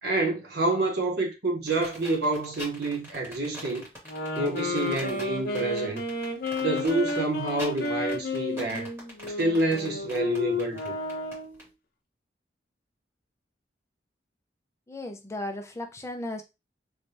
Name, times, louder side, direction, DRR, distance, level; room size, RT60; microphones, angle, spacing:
voice 1, 0.0-3.9 4.4-6.0 6.6-8.9 9.4-11.0, right 2 dB, 65° right, 0.9 m, -28 dB
sound 1, 1.7-11.6, equal, 15° right, 2.0 m, -43 dB
sound 2, 4.0-11.6, left 3 dB, 55° left, 0.9 m, -32 dB
voice 2, 14.9-16.4, left 1 dB, 15° left, 0.6 m, -35 dB
3.3 x 3.3 x 2.7 m
head